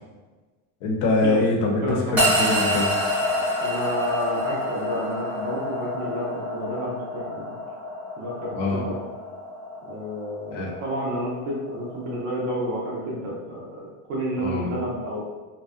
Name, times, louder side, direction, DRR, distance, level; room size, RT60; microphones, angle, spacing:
voice 1, 0.8-2.9 8.5-8.8 10.5-10.7 14.4-14.8, left 2 dB, 55° left, 0 dB, 0.6 m, -24 dB
voice 2, 1.8-2.2 3.6-7.5 8.2-9.0 9.8-15.2, equal, 35° right, -5 dB, 0.4 m, -30 dB
sound 1, 2.2-12.5, left 1 dB, 5° right, 0.7 m, -28 dB
2.6 x 2.1 x 2.4 m, 1.3 s
cardioid pair, 175°, 44 cm